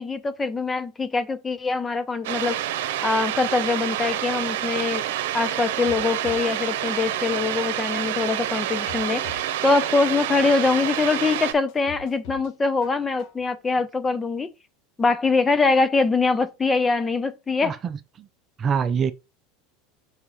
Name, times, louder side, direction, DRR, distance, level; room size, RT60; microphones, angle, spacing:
voice 1, 0.0-14.5 15.0-17.8, left 4 dB, 15° left, 0.7 m, -23 dB
sound 1, 2.2-11.5, right 12 dB, 80° right, 0.9 m, -28 dB
sound 2, 5.5-6.5 6.8-7.4 7.9-8.0 8.5-9.5 9.8-10.4 10.9-11.0 11.5-12.5 12.8-13.4 13.8-13.9, left 5 dB, 65° left, 1.2 m, -44 dB
voice 2, 17.6-18.3 18.6-19.1, right 6 dB, 30° right, 0.6 m, -25 dB
5.6 x 4.7 x 4.1 m
supercardioid pair, 120°, 0 cm